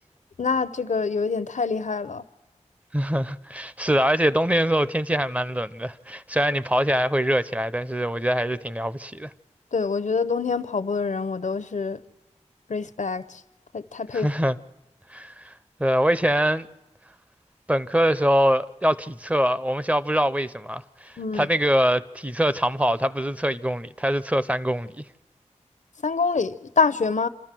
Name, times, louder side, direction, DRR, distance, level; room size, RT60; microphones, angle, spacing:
voice 1, 0.4-2.2 9.7-12.0 12.7-13.4 13.7-14.3 21.2-21.5 26.0-27.3, left 4 dB, 75° left, 0.7 m, -25 dB
voice 2, 2.9-9.3 14.1-14.6 15.1-15.5 15.8-16.7 17.7-25.0, equal, 10° right, 0.6 m, -23 dB
27.5 x 13.5 x 7.5 m
wide cardioid pair, 75°, 13 cm